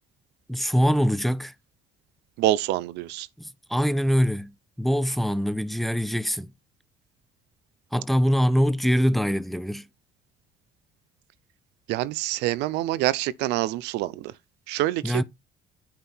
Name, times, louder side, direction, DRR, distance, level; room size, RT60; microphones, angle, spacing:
voice 1, 0.5-1.5 3.4-6.5 7.9-9.9 15.0-15.2, equal, ahead, 0.8 m, -23 dB
voice 2, 2.4-3.3 11.9-14.3 14.7-15.2, right 15 dB, 90° right, 0.6 m, -26 dB
9.0 x 4.5 x 5.5 m
cardioid pair, 110°, 17 cm